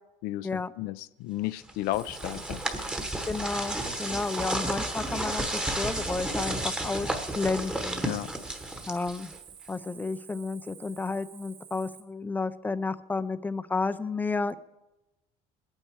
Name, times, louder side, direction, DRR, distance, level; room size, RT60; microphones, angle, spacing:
voice 1, 0.2-2.6 8.0-8.3, left 16 dB, 70° left, 17 dB, 0.5 m, -33 dB
sound 1, 1.7-9.5, right 1 dB, 5° right, 1.1 m, -32 dB
Cricket, 1.9-12.0, right 8 dB, 65° right, 2.6 m, -50 dB
voice 2, 3.3-8.1 8.9-9.3 9.7-14.6, left 3 dB, 10° left, 14 dB, 0.5 m, -32 dB
21.0 x 8.9 x 4.7 m, 0.97 s
cardioid pair, 145°, 16 cm